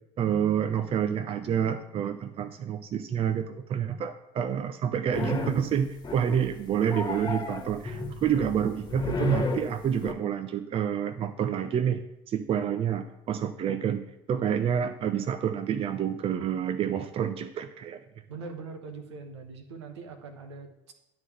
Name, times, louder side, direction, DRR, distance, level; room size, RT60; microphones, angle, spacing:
voice 1, 0.2-12.0 12.3-18.0, right 8 dB, 40° right, 9 dB, 0.6 m, -28 dB
sound 1, 5.1-5.7 6.0-6.5 6.8-10.1, left 3 dB, 30° left, 1.5 m, -32 dB
voice 2, 18.3-20.9, right 4 dB, 80° right, 6 dB, 1.0 m, -42 dB
11.0 x 3.8 x 7.1 m, 0.85 s
figure-of-eight pair, 60°, 14 cm